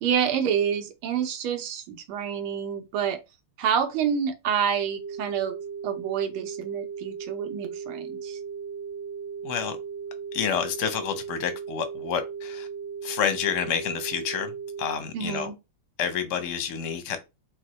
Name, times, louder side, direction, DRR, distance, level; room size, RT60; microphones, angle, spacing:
voice 1, 0.0-3.2 3.6-5.6 5.8-8.4 15.1-15.6, right 8 dB, 80° right, 1.6 m, -28 dB
sound 1, 5.0-15.0, right 6 dB, 60° right, 1.2 m, -37 dB
voice 2, 9.4-9.8 10.3-12.7 13.0-15.5 16.0-17.2, left 8 dB, 60° left, 0.8 m, -29 dB
4.7 x 2.1 x 4.2 m
omnidirectional pair, 2.3 m